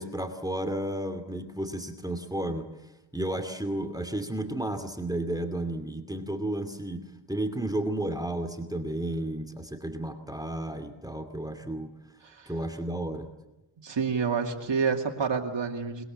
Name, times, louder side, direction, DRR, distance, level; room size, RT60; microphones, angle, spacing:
voice 1, 0.0-2.7 3.1-11.9 12.5-13.3, right 1 dB, 10° right, 9 dB, 2.5 m, -32 dB
voice 2, 13.8-16.1, right 5 dB, 70° right, 2 dB, 2.5 m, -28 dB
21.5 x 21.0 x 8.7 m, 0.95 s
cardioid pair, 50°, 45 cm